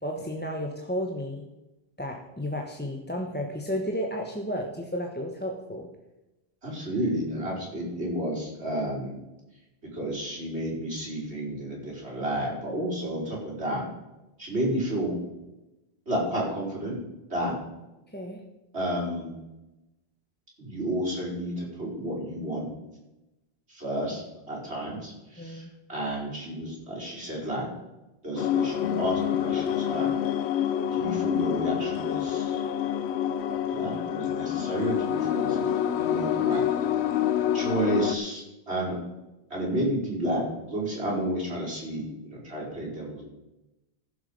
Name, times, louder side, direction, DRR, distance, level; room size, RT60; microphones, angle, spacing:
voice 1, 0.0-1.4 2.0-5.9 18.1-18.4 25.4-25.7, equal, 10° left, 1 dB, 1.0 m, -32 dB
voice 2, 6.6-9.1 9.9-13.9 14.4-15.2 16.1-17.0 17.3-17.5 18.7-19.4 20.6-22.7 23.7-27.7 28.2-30.1 30.9-32.6 33.6-36.6 37.5-39.0 39.5-40.4 40.7-43.2, right 1 dB, 85° right, -5 dB, 4.8 m, -31 dB
sound 1, 28.4-38.1, left 9 dB, 80° left, 0.9 m, -27 dB
14.5 x 7.1 x 5.2 m, 0.98 s
omnidirectional pair, 1.1 m